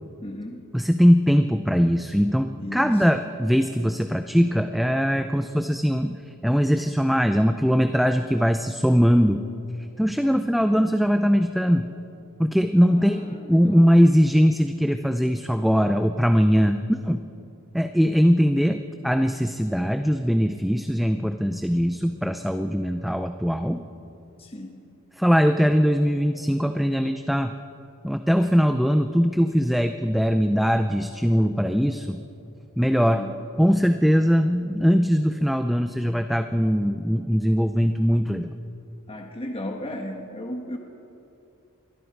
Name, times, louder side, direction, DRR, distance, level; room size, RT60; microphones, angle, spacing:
voice 1, 0.2-0.7 2.6-3.0 12.9-13.8 24.4-24.8 33.0-33.3 39.1-40.8, left 1 dB, 30° left, 3 dB, 1.3 m, -35 dB
voice 2, 0.7-9.4 10.0-11.9 12.4-17.2 17.7-23.9 25.2-27.5 28.0-32.2 32.8-33.2 33.6-38.5, equal, ahead, 7 dB, 0.5 m, -21 dB
27.5 x 22.5 x 4.8 m, 2.7 s
head